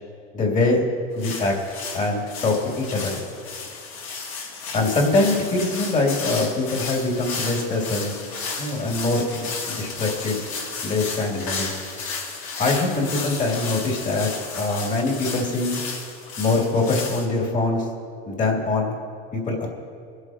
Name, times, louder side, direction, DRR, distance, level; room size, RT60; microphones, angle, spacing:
voice 1, 0.3-0.8 1.1-1.5 1.9-3.2 4.7-8.1 8.6-10.4 10.8-11.7 12.6-15.8 16.4-17.8 18.3-18.9 19.3-19.7, left 2 dB, 25° left, 0 dB, 3.1 m, -23 dB
sound 1, 1.2-17.2, left 4 dB, 60° left, 3.5 m, -33 dB
22.5 x 8.0 x 4.5 m, 2.3 s
supercardioid pair, 120°, 30 cm